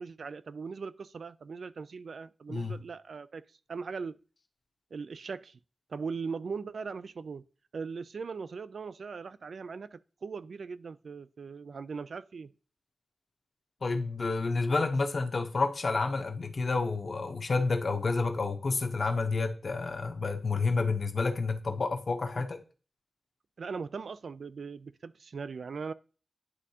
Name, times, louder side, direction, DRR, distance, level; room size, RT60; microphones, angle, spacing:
voice 1, 0.0-3.4 3.7-4.2 4.9-5.6 5.9-7.4 7.7-12.5 22.3-22.4 23.6-25.9, right 5 dB, 70° right, 0.3 m, -39 dB
voice 2, 13.8-22.6, left 3 dB, 50° left, 0.8 m, -29 dB
11.0 x 3.7 x 2.8 m
wide cardioid pair, 120°, 0 cm